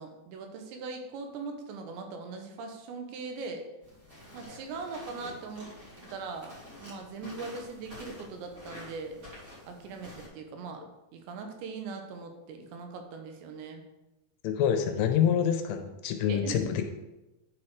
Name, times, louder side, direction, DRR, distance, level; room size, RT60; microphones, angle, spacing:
voice 1, 0.0-3.7 4.3-5.7 6.1-6.5 6.8-9.2 9.7-10.8 11.1-13.8 16.3-16.7, right 4 dB, 85° right, 4 dB, 3.3 m, -40 dB
sound 1, 3.8-10.3, left 1 dB, 30° right, 1.7 m, -48 dB
voice 2, 14.4-16.9, left 8 dB, 85° left, 6 dB, 2.8 m, -26 dB
10.5 x 4.4 x 4.7 m, 0.99 s
omnidirectional pair, 5.0 m